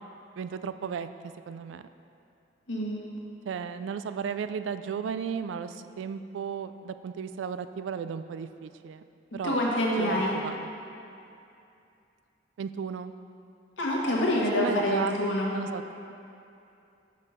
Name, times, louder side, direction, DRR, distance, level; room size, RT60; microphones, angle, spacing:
voice 1, 0.4-1.1 1.5-1.9 3.5-9.0 9.3-9.6 10.0-10.7 12.6-13.1 14.6-15.1 15.5-15.8, right 6 dB, 80° right, 11 dB, 0.3 m, -34 dB
voice 2, 2.7-3.0 9.4-10.3 13.8-15.5, left 1 dB, 85° left, -3 dB, 1.3 m, -26 dB
6.3 x 5.3 x 5.5 m, 2.7 s
head